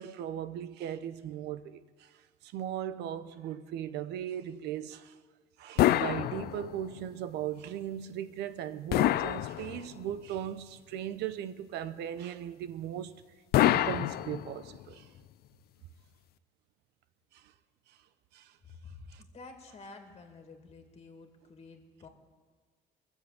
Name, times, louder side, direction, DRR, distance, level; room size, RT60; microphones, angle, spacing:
voice 1, 0.0-2.1 2.4-5.2 5.6-13.1 13.6-15.1 17.3-17.4 17.9-18.0 18.3-18.5 19.1-19.2, right 10 dB, 85° right, 0.8 m, -38 dB
sound 1, 5.8-7.0 8.9-10.1 13.5-14.8, left 14 dB, 65° left, 0.4 m, -27 dB
voice 2, 18.6-22.1, left 3 dB, 40° left, 2.5 m, -50 dB
21.5 x 7.5 x 7.5 m
cardioid pair, 110°, 17 cm